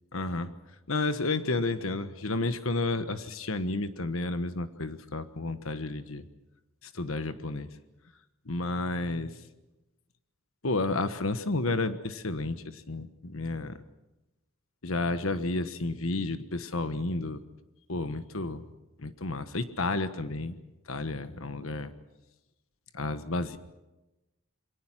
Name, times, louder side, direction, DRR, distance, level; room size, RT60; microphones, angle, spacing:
voice 1, 0.1-0.5 0.9-6.2 6.8-7.7 8.4-9.4 10.6-13.8 14.8-17.4 17.9-18.6 19.0-20.6 20.9-21.9 22.9-23.6, left 2 dB, 75° left, 11 dB, 1.3 m, -31 dB
27.5 x 22.5 x 6.0 m, 1.0 s
head